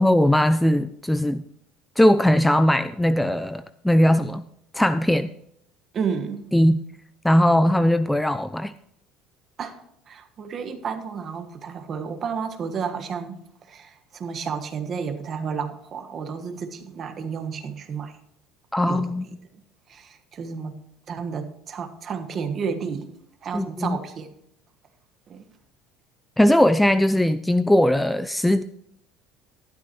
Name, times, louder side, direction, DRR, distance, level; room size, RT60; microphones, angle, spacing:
voice 1, 0.0-1.4 2.0-4.4 4.7-5.3 6.5-6.8 7.2-8.7 18.7-19.2 23.5-24.0 26.4-28.6, left 1 dB, 5° left, 13 dB, 0.3 m, -19 dB
voice 2, 5.9-6.5 9.6-13.4 13.7-18.2 18.8-19.1 19.5-19.6 19.9-20.8 21.1-23.1 23.4-24.3 25.3-25.5, right 6 dB, 35° right, 7 dB, 1.3 m, -31 dB
12.5 x 12.0 x 3.0 m, 0.74 s
cardioid pair, 130°, 0 cm